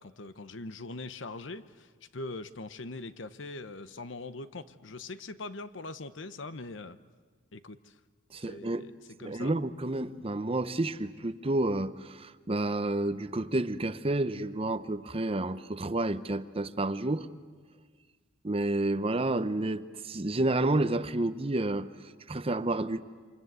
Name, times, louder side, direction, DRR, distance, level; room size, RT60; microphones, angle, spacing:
voice 1, 0.0-7.0 7.5-8.0 8.4-8.9 9.2-9.5, left 2 dB, 70° left, 0.9 m, -42 dB
voice 2, 8.3-8.9 9.2-17.3 18.4-23.0, right 2 dB, 30° right, 0.7 m, -30 dB
28.5 x 25.5 x 8.1 m
head